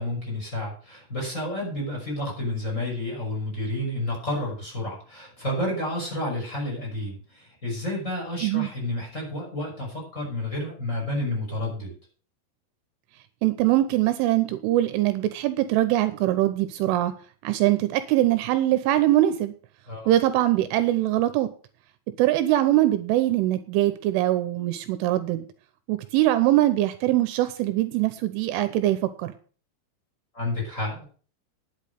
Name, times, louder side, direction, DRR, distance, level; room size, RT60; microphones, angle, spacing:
voice 1, 0.0-11.9 19.9-20.1 30.3-31.0, left 1 dB, 15° left, -1 dB, 6.0 m, -30 dB
voice 2, 13.4-17.1 17.4-19.5 20.1-21.5 22.2-25.5 25.9-29.3, right 14 dB, 80° right, 11 dB, 3.1 m, -22 dB
10.5 x 8.3 x 6.6 m, 0.40 s
omnidirectional pair, 5.8 m